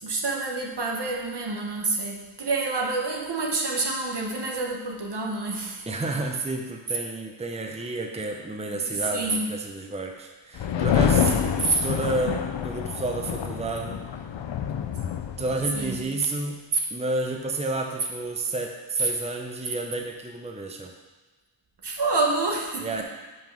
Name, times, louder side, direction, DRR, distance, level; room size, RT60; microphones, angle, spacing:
voice 1, 0.0-5.9 8.7-9.5 11.2-11.8 15.1-15.2 15.7-16.0 19.0-19.1 21.8-23.0, right 3 dB, 65° right, 0 dB, 1.3 m, -28 dB
voice 2, 5.9-11.4 11.8-14.0 15.4-16.6 16.9-20.9 22.8-23.0, right 2 dB, 15° right, 2 dB, 0.7 m, -30 dB
sound 1, 10.6-16.0, left 8 dB, 80° left, 0.6 m, -27 dB
5.8 x 5.4 x 6.0 m, 1.3 s
wide cardioid pair, 90°, 43 cm